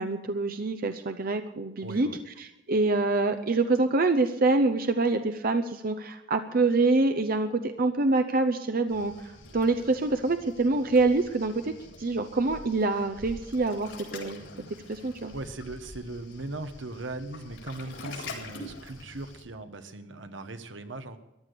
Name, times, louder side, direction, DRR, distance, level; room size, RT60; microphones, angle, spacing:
voice 1, 0.0-2.1 2.4-9.1 9.5-11.7 12.0-14.4 14.9-15.3, right 3 dB, 50° right, 8 dB, 0.7 m, -25 dB
voice 2, 1.8-2.2 15.3-21.2, right 2 dB, 85° right, 8 dB, 1.2 m, -39 dB
Waves surf, 8.9-19.4, left 2 dB, 75° left, 3.9 m, -45 dB
14.5 x 11.5 x 6.8 m, 0.91 s
head